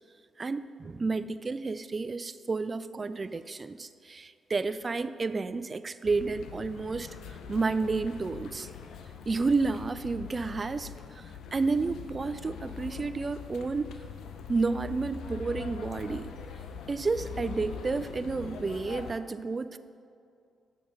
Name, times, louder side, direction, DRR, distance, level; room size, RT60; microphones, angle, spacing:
voice 1, 0.4-7.2 7.5-8.7 9.3-13.9 14.5-16.3 16.9-19.8, right 4 dB, 35° right, 13 dB, 0.3 m, -31 dB
sound 1, 6.0-19.1, left 7 dB, 75° left, 0.5 m, -43 dB
6.9 x 5.1 x 6.4 m, 2.4 s
supercardioid pair, 55°, 0 cm